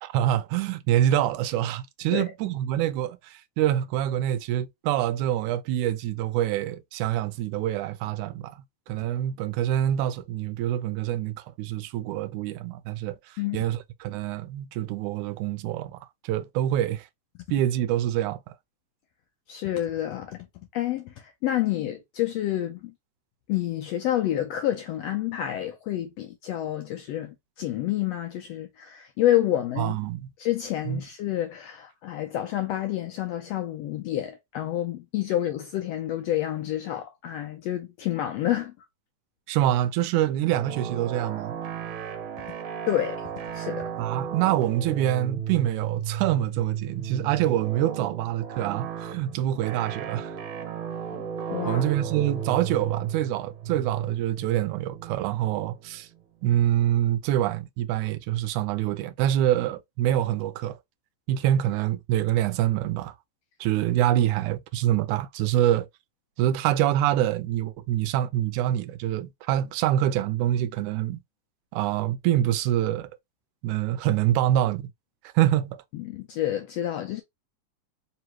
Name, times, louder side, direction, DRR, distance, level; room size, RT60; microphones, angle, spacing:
voice 1, 0.0-17.1 17.5-18.5 29.8-30.3 30.9-31.0 39.5-41.6 44.0-50.4 51.7-56.1 56.4-60.8 61.3-63.2 63.6-65.9 66.4-71.2 71.7-73.1 73.6-74.9 75.4-75.8, right 12 dB, 80° right, 2.0 m, -26 dB
voice 2, 19.5-20.4 20.7-22.9 23.5-29.9 30.4-38.7 42.9-43.3 43.5-43.9 51.1-51.8 75.9-77.2, left 12 dB, 80° left, 1.5 m, -29 dB
sound 1, 40.5-57.0, right 8 dB, 65° right, 1.9 m, -35 dB
4.8 x 2.9 x 3.0 m
omnidirectional pair, 3.5 m